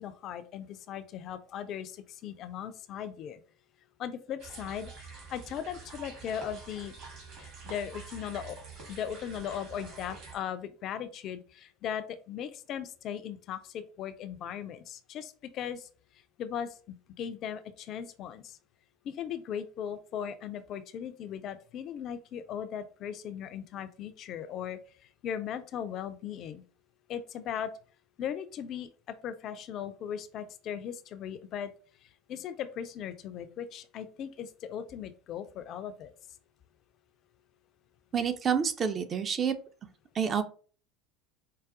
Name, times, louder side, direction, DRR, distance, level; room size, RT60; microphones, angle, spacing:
voice 1, 0.0-3.4 4.0-6.9 7.4-8.6 8.9-15.9 16.4-18.6 19.0-26.6 27.1-27.7 28.2-31.7 32.0-36.1, left 9 dB, 45° left, 10 dB, 0.3 m, -38 dB
sound 1, 4.4-10.4, right 4 dB, 55° right, 1.6 m, -47 dB
voice 2, 38.1-39.6 40.1-40.4, right 7 dB, 35° right, 9 dB, 0.4 m, -28 dB
4.7 x 2.2 x 2.4 m, 0.40 s
figure-of-eight pair, 70°, 0 cm